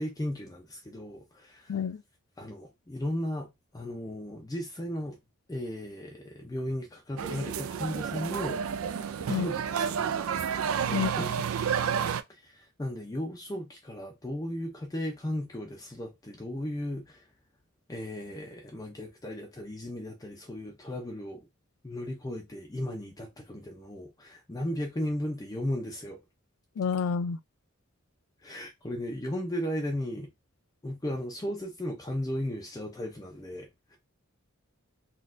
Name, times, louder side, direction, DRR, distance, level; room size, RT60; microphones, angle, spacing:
voice 1, 0.0-1.8 2.4-5.2 5.5-8.6 9.2-10.1 10.9-11.4 12.3-17.3 17.9-21.5 21.8-26.2 28.4-30.3 30.8-34.0, left 1 dB, 15° left, 0.5 m, -36 dB
voice 2, 1.7-2.0 9.3-9.5 10.9-11.1 26.8-27.4, left 6 dB, 75° left, 0.4 m, -29 dB
sound 1, 7.2-12.2, right 7 dB, 75° right, 0.4 m, -30 dB
3.9 x 2.3 x 2.5 m
head